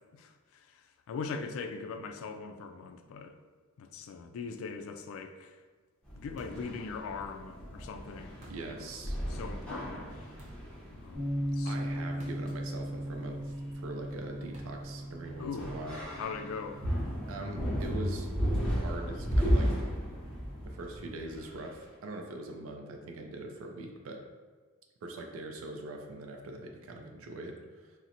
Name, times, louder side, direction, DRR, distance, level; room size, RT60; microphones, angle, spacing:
voice 1, 0.1-3.4 3.8-5.6 6.1-10.3 10.9-11.8 15.4-15.8 16.2-16.9, left 5 dB, 80° left, 8 dB, 0.3 m, -41 dB
sound 1, 6.0-21.7, equal, 5° left, 0.7 m, -35 dB
sound 2, 6.4-6.7 8.4-8.8 10.4-10.7 12.2-12.5 12.8-12.9 14.5-14.9, right 1 dB, 35° right, 0.6 m, -52 dB
voice 2, 8.4-9.2 11.6-16.0 17.3-18.4 18.7-19.7 20.7-24.2 25.0-27.9, right 2 dB, 85° right, 3 dB, 0.4 m, -42 dB
Bass guitar, 11.1-17.4, equal, 50° right, 0.9 m, -38 dB
4.1 x 2.0 x 2.5 m, 1.4 s
head